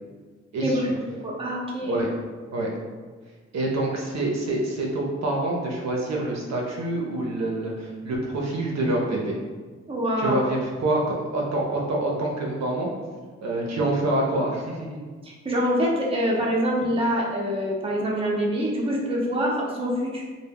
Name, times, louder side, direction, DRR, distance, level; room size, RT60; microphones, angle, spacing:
voice 1, 0.5-0.9 1.8-2.1 2.5-2.7 3.5-9.3 10.2-12.9 13.4-15.0, right 2 dB, 65° right, -2 dB, 0.5 m, -26 dB
voice 2, 1.2-2.0 9.9-10.5 15.2-20.2, equal, 20° right, -4 dB, 0.6 m, -25 dB
2.1 x 2.0 x 3.4 m, 1.5 s
cardioid pair, 65°, 29 cm